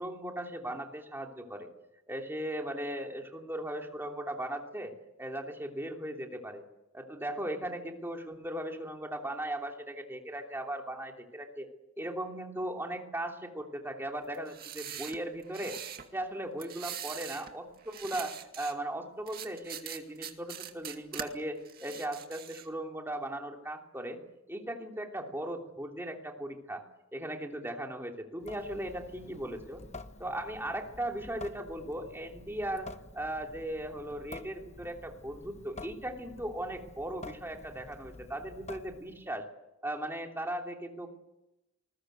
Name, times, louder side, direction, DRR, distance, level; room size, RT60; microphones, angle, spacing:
voice 1, 0.0-1.7 2.1-4.9 5.2-6.6 6.9-11.7 12.0-15.8 16.1-24.2 24.5-26.8 27.1-29.8 30.2-32.9 33.1-39.4 39.8-41.1, right 1 dB, 10° right, 2 dB, 3.0 m, -38 dB
sound 1, 14.3-16.1 16.6-17.5 17.8-18.7 19.3-21.3 21.6-22.7, right 9 dB, 45° right, 2.2 m, -42 dB
Water tap faucet / Sink (filling or washing) / Drip, 28.4-39.3, left 2 dB, 30° left, 1.0 m, -49 dB
27.5 x 21.0 x 8.0 m, 0.94 s
head